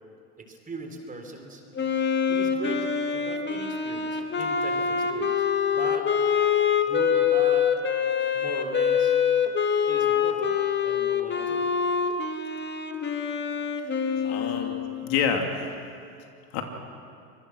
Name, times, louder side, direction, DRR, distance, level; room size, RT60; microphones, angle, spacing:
voice 1, 0.4-1.6 2.3-2.9 3.1-5.3 5.7-6.1 6.9-7.8 8.3-9.2 9.9-10.6 10.8-11.7, right 2 dB, 20° right, 4 dB, 3.8 m, -38 dB
Wind instrument woodwind instrument, 1.7-15.2, left 7 dB, 25° left, 1.9 m, -25 dB
voice 2, 14.2-15.7 16.5-16.6, left 6 dB, 55° left, 3 dB, 2.9 m, -28 dB
25.5 x 21.5 x 6.4 m, 2.4 s
hypercardioid pair, 100°, 45 cm